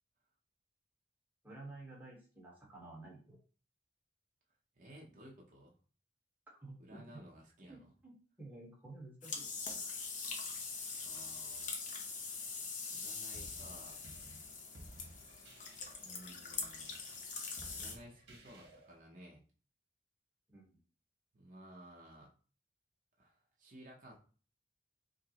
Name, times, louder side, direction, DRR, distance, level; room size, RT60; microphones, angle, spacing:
voice 1, 1.4-3.4 6.5-7.2 7.7-9.5 20.5-20.8, right 2 dB, 10° right, -4 dB, 1.1 m, -52 dB
voice 2, 4.7-5.7 6.8-7.9 11.0-11.7 12.9-14.0 16.0-17.0 17.7-19.4 21.3-22.3 23.2-24.2, equal, 45° right, -2 dB, 0.7 m, -56 dB
sound 1, 9.2-17.9, left 4 dB, 45° left, 0.7 m, -43 dB
sound 2, 13.3-19.0, right 1 dB, 75° right, 1.1 m, -56 dB
5.0 x 2.0 x 2.8 m, 0.40 s
head